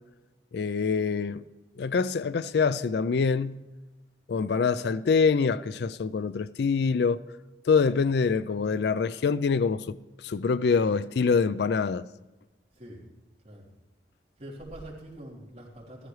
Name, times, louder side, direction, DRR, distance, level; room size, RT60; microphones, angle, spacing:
voice 1, 0.5-1.4 1.8-3.6 4.3-7.2 7.7-12.0, left 5 dB, 60° left, 0.4 m, -25 dB
voice 2, 12.7-13.1 13.4-13.7 14.4-16.1, right 1 dB, 40° right, 3.4 m, -44 dB
15.0 x 14.0 x 3.2 m
head